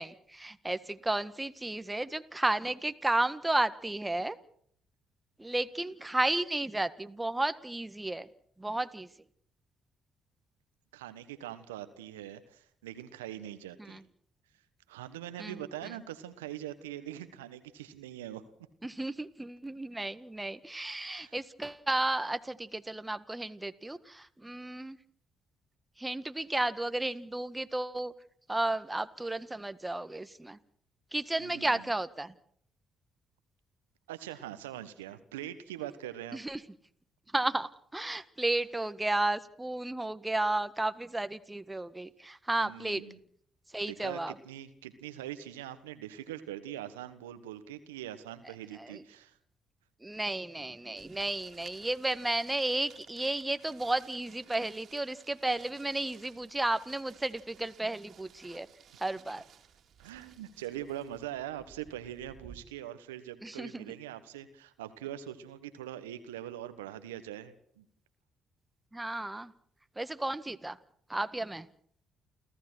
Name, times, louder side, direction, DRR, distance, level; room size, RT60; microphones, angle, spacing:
voice 1, 0.0-4.4 5.4-8.3 8.6-9.1 13.8-14.0 15.4-15.9 18.8-25.0 26.0-28.1 28.5-30.6 31.1-32.3 36.3-36.6 37.3-43.0 43.7-44.3 48.7-49.0 50.0-58.7 59.0-59.4 63.4-63.8 68.9-69.5 70.0-70.8 71.1-71.7, right 2 dB, 15° right, 12 dB, 1.7 m, -33 dB
voice 2, 10.9-14.0 14.9-18.4 20.9-21.3 31.4-31.8 34.1-36.4 42.6-43.2 43.8-44.2 44.4-49.3 60.0-67.8, right 12 dB, 85° right, 11 dB, 1.3 m, -42 dB
sound 1, 51.0-62.6, right 8 dB, 60° right, 2.6 m, -57 dB
29.5 x 15.0 x 6.3 m, 0.63 s
hypercardioid pair, 45°, 0 cm